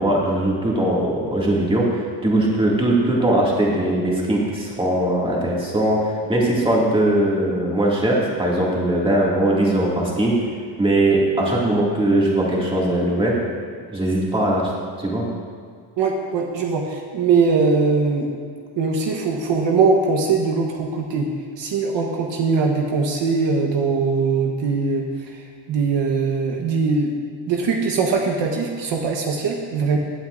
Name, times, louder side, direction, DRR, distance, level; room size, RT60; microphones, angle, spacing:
voice 1, 0.0-10.4 10.8-13.4 13.9-14.7 15.0-15.3, right 1 dB, 10° right, -5 dB, 2.2 m, -20 dB
voice 2, 16.0-18.3 18.8-21.3 21.6-27.1 27.5-30.0, right 4 dB, 65° right, 1 dB, 1.2 m, -21 dB
16.5 x 8.6 x 2.6 m, 2.1 s
cardioid pair, 125°, 47 cm